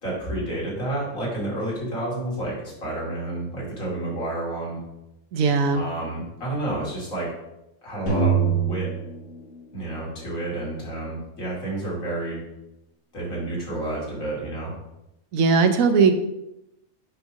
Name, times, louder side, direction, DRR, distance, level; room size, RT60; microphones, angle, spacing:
voice 1, 0.0-4.8 5.7-7.3 7.8-8.9 9.7-12.4 13.1-14.7, right 1 dB, 65° left, -5 dB, 3.0 m, -30 dB
voice 2, 5.3-5.8 15.3-16.1, right 5 dB, 70° right, 8 dB, 1.1 m, -18 dB
sound 1, 8.1-10.2, right 6 dB, 50° left, 2.3 m, -24 dB
7.9 x 3.3 x 6.1 m, 0.88 s
omnidirectional pair, 1.5 m